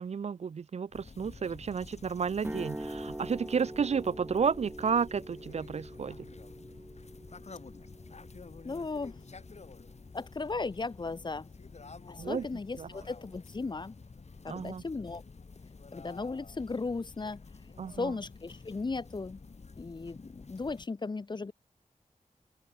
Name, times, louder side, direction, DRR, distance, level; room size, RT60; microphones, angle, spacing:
voice 1, 0.0-6.2 12.2-12.5 12.8-12.9 14.5-14.8 17.8-18.1, right 6 dB, 55° right, 0.4 m, -32 dB
sound 1, 0.9-20.9, left 4 dB, 55° left, 1.8 m, -50 dB
sound 2, 2.4-10.4, right 1 dB, 15° right, 3.5 m, -44 dB
voice 2, 8.6-9.1 10.1-11.5 12.1-13.9 14.4-15.2 15.9-17.4 18.0-19.4 19.8-21.5, left 3 dB, 35° left, 0.5 m, -36 dB
open air
wide cardioid pair, 75°, 13 cm